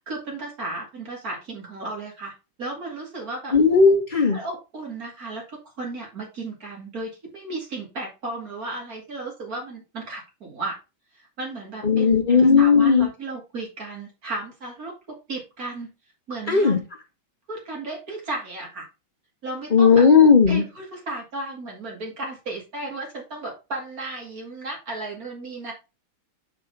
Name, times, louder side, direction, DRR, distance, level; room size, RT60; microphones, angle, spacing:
voice 1, 0.0-2.3 2.6-3.5 4.3-10.8 11.4-15.9 16.3-16.8 17.5-18.9 19.4-20.1 20.5-25.7, right 2 dB, 45° right, 3.0 m, -34 dB
voice 2, 3.5-4.4 11.8-13.1 16.5-16.8 19.7-20.6, left 5 dB, 25° left, 1.2 m, -16 dB
5.9 x 5.0 x 4.7 m
omnidirectional pair, 2.3 m